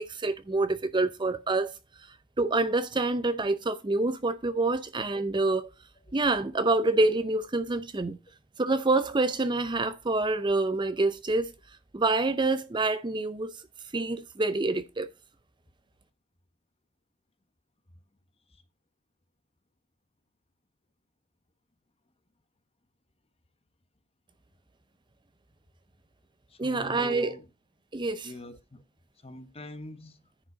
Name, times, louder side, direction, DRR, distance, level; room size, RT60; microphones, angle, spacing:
voice 1, 0.0-1.8 2.4-5.7 6.1-8.2 8.6-11.5 11.9-13.6 13.9-15.1 26.6-27.4 27.9-28.3, right 2 dB, 20° right, 0.5 m, -27 dB
voice 2, 26.5-27.4 28.2-28.8 29.2-30.2, left 1 dB, 30° left, 1.1 m, -44 dB
10.0 x 5.2 x 5.0 m
head